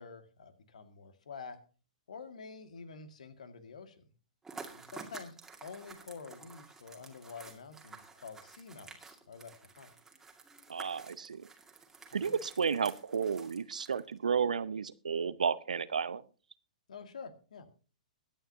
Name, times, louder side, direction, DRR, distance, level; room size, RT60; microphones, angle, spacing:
voice 1, 0.0-1.6 2.1-4.0 4.7-5.4 5.6-9.9 12.1-12.4 16.9-17.7, left 5 dB, 65° left, 8 dB, 2.0 m, -48 dB
sound 1, 4.4-14.2, right 4 dB, 10° right, 2.1 m, -51 dB
voice 2, 10.7-11.4 12.1-16.2, right 6 dB, 75° right, 17 dB, 0.7 m, -32 dB
22.5 x 9.0 x 2.8 m, 0.37 s
figure-of-eight pair, 115°, 4 cm